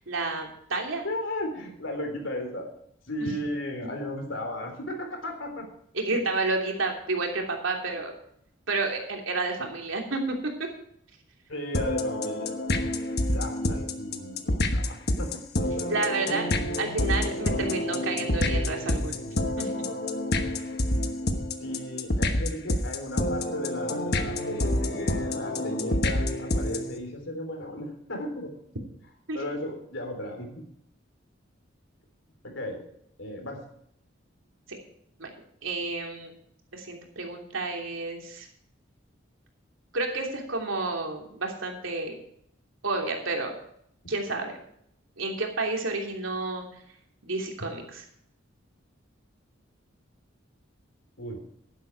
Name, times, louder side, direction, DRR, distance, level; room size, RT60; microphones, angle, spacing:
voice 1, 0.0-1.0 3.2-3.3 5.9-8.1 8.7-10.2 15.9-16.5 16.8-19.1 19.6-19.9 29.3-29.4 35.2-35.3 35.6-36.3 36.7-38.5 39.9-42.2 42.8-43.5 44.1-44.6 45.2-46.6 47.2-48.0, right 3 dB, 85° right, 2 dB, 3.0 m, -30 dB
voice 2, 1.0-2.7 3.0-5.7 11.5-12.6 13.3-16.1 21.6-28.5 29.3-30.6 32.4-32.9 33.2-33.6 51.2-51.4, left 1 dB, 75° left, 3 dB, 3.6 m, -35 dB
sound 1, 11.7-27.0, left 1 dB, 55° left, 1.2 m, -28 dB
11.0 x 11.0 x 4.7 m, 0.70 s
head